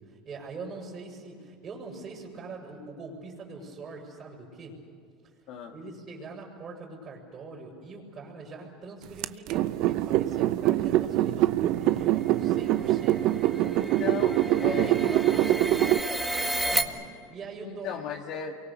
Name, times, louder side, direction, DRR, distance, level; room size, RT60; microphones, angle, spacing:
voice 1, 0.0-4.8 5.2-5.3 5.7-13.4 14.6-18.0, right 3 dB, 30° right, -6 dB, 6.3 m, -42 dB
sound 1, 9.2-16.0, right 14 dB, 55° right, 0.8 m, -24 dB
sound 2, 12.1-16.8, right 1 dB, 5° right, 1.9 m, -33 dB
voice 2, 13.7-15.1 17.6-18.6, left 8 dB, 55° left, 0 dB, 1.8 m, -36 dB
28.5 x 24.0 x 6.9 m, 2.4 s
supercardioid pair, 135°, 0 cm